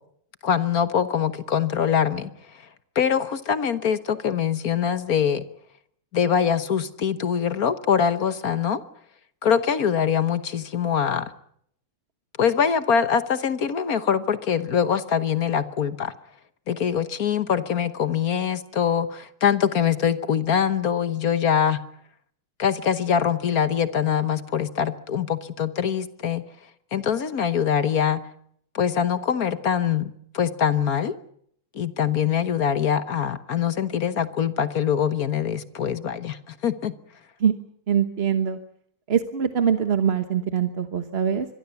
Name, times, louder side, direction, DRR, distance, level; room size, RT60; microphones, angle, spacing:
voice 1, 0.4-2.3 2.9-5.4 6.1-8.8 9.4-11.3 12.4-16.1 16.7-21.8 22.6-26.4 26.9-28.2 28.7-31.1 31.7-36.9, left 8 dB, 55° left, 13 dB, 1.5 m, -23 dB
voice 2, 37.9-38.6 39.1-41.5, right 8 dB, 40° right, 9 dB, 1.2 m, -23 dB
25.5 x 22.5 x 7.0 m, 0.68 s
omnidirectional pair, 2.0 m